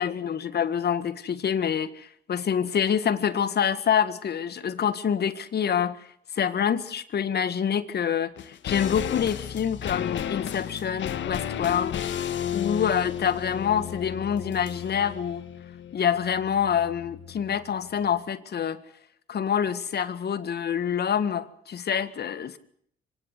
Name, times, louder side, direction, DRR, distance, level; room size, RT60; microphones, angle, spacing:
voice 1, 0.0-6.1 6.3-12.0 12.5-15.5 15.9-18.8 19.3-22.6, left 8 dB, 55° left, 14 dB, 1.8 m, -26 dB
sound 1, 8.4-17.7 18.0-18.1, left 10 dB, 70° left, 1.7 m, -33 dB
25.0 x 18.0 x 9.5 m, 0.66 s
cardioid pair, 90°, 20 cm